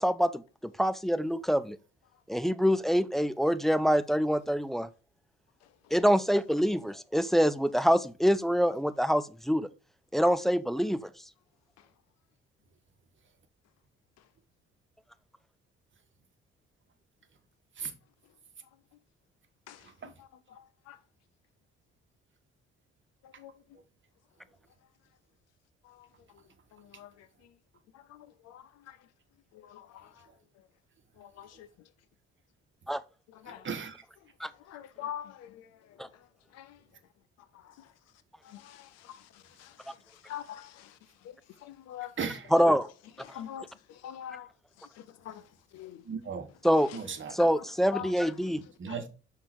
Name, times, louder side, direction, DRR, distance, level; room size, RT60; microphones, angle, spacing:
voice 1, 0.0-1.8 2.3-4.9 5.9-9.7 10.1-11.1 32.9-33.0 34.4-34.5 36.0-36.1 42.5-42.9 46.6-46.9 47.3-48.6, equal, ahead, 0.4 m, -25 dB
voice 2, 5.6-6.0 11.8-11.9 14.2-14.3 19.7-21.0 23.2-23.5 25.8-26.4 26.7-27.6 27.9-29.1 29.5-30.3 30.6-30.7 31.2-31.9 33.3-33.7 34.5-36.8 37.5-37.9 38.4-42.3 43.2-44.5 44.8-46.0 46.8-47.0 47.3-47.6 47.9-48.4 48.9-49.0, left 11 dB, 55° left, 0.6 m, -46 dB
voice 3, 33.5-34.0 42.2-42.5 46.0-46.5 46.9-47.3 48.8-49.1, right 6 dB, 40° right, 1.2 m, -36 dB
5.9 x 3.8 x 4.3 m
figure-of-eight pair, 45°, 31 cm